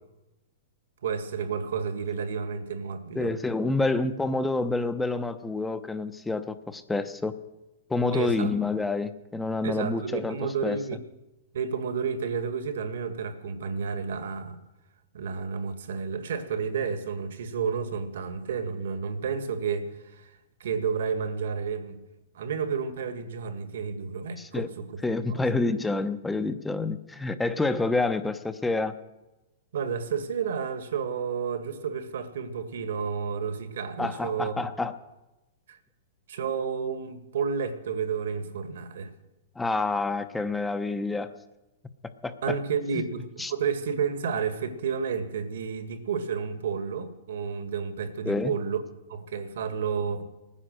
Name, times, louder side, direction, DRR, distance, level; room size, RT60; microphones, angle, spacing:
voice 1, 1.0-3.3 8.1-8.5 9.6-11.0 11.5-14.6 15.1-20.3 20.6-22.0 22.3-25.0 25.3-25.4 29.7-34.6 35.7-35.8 36.3-39.1 42.4-48.8 49.1-50.3, right 6 dB, 75° right, 1.8 m, -31 dB
voice 2, 3.1-7.3 7.9-10.4 10.6-10.8 24.4-24.7 25.0-28.9 34.0-34.9 39.6-41.3 42.2-42.6 43.4-43.5 48.3-48.5, left 3 dB, 10° left, 0.9 m, -28 dB
19.0 x 9.9 x 6.5 m
hypercardioid pair, 125°, 0 cm